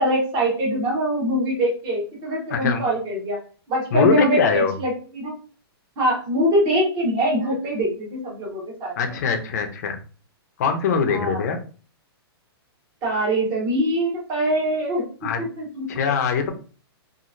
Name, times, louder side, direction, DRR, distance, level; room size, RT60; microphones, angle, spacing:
voice 1, 0.0-3.4 3.7-5.3 6.0-9.2 11.1-11.4 13.0-15.0 15.4-15.9, right 1 dB, 20° right, -3 dB, 1.1 m, -23 dB
voice 2, 2.5-2.8 3.9-4.7 9.0-10.0 10.6-11.6 15.2-15.4 15.9-16.5, left 6 dB, 40° left, 6 dB, 0.5 m, -22 dB
2.9 x 2.4 x 2.5 m, 0.38 s
hypercardioid pair, 170°, 13 cm